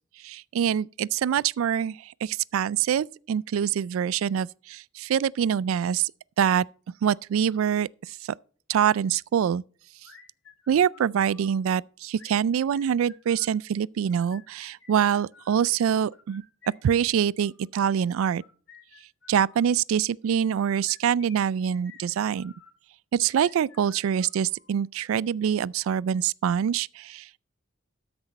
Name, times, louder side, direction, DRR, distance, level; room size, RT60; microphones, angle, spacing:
voice 1, 0.2-6.1 6.4-6.7 7.0-8.2 8.7-9.6 10.7-16.4 16.8-18.4 19.3-22.5 23.1-27.4, right 8 dB, 90° right, 0.3 m, -25 dB
sound 1, 10.0-11.6 12.1-13.6 14.1-15.6 16.1-17.7 18.3-19.7 20.4-22.7 23.3-24.8, left 5 dB, 75° left, 2.7 m, -54 dB
13.0 x 6.1 x 4.1 m
head